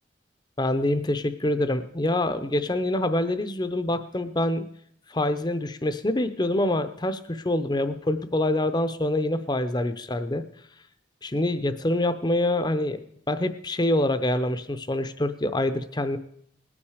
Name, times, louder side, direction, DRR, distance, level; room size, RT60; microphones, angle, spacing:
voice 1, 0.6-4.7 5.1-10.4 11.2-16.2, left 1 dB, 20° left, 11 dB, 0.7 m, -26 dB
20.0 x 8.8 x 4.9 m, 0.67 s
head